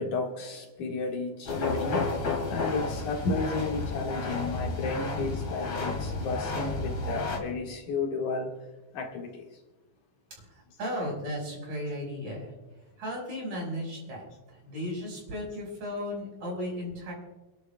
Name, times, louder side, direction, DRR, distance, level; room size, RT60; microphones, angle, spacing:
voice 1, 0.0-2.1 2.5-8.5 8.9-9.5, left 3 dB, 80° left, 1 dB, 3.2 m, -32 dB
sound 1, 1.5-7.4, left 3 dB, 50° left, 3.0 m, -31 dB
voice 2, 10.5-12.5 13.0-14.2 14.5-17.1, equal, 75° right, -2 dB, 6.5 m, -35 dB
29.5 x 11.5 x 2.3 m, 1.1 s
omnidirectional pair, 3.4 m